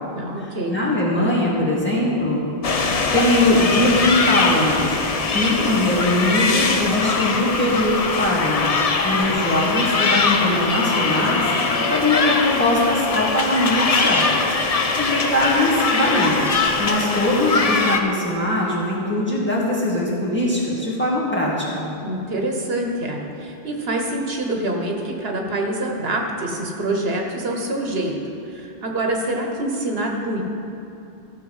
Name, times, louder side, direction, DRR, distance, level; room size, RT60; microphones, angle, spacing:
voice 1, 0.1-0.7 22.0-28.1 28.5-30.4, right 1 dB, 75° right, 1 dB, 1.4 m, -25 dB
voice 2, 0.7-2.4 3.1-5.0 5.3-8.7 9.0-11.5 11.9-14.2 15.0-16.4 16.8-21.9, left 1 dB, 10° left, -7 dB, 2.2 m, -21 dB
sound 1, 2.6-18.0, left 4 dB, 45° left, 0.7 m, -21 dB
14.5 x 6.6 x 5.5 m, 2.9 s
omnidirectional pair, 1.0 m